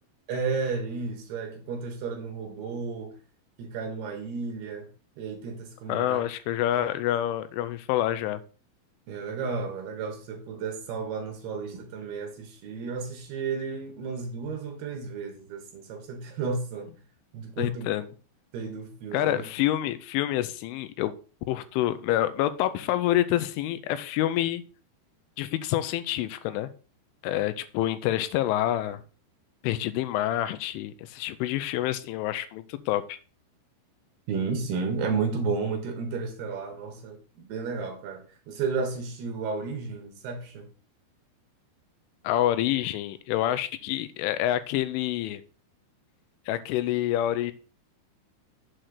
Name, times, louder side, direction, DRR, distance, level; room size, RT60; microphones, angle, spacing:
voice 1, 0.3-3.2 3.6-4.9 5.2-6.2 6.8-6.9 9.1-16.9 17.3-17.9 18.5-19.4 34.3-40.7, right 4 dB, 70° right, 2.9 m, -32 dB
voice 2, 5.9-8.4 17.6-18.1 19.1-21.1 21.5-24.6 25.4-26.7 27.2-29.0 29.6-33.2 42.2-45.4 46.5-47.5, left 13 dB, 85° left, 3.1 m, -27 dB
7.6 x 4.3 x 6.6 m
omnidirectional pair, 5.5 m